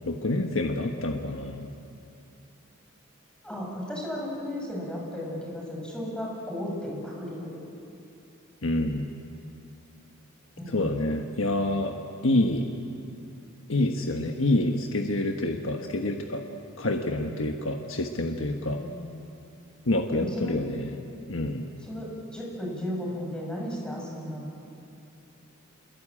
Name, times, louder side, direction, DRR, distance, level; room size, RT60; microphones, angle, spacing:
voice 1, 0.1-1.7 8.6-9.1 10.7-12.0 12.2-12.7 13.7-16.4 16.8-18.8 19.8-21.0 21.3-21.7, left 1 dB, 75° left, 3 dB, 1.4 m, -27 dB
voice 2, 3.4-7.5 10.6-11.0 18.7-19.3 20.1-20.6 21.8-24.5, left 1 dB, 5° left, -3 dB, 7.2 m, -35 dB
27.0 x 22.5 x 8.9 m, 2.6 s
head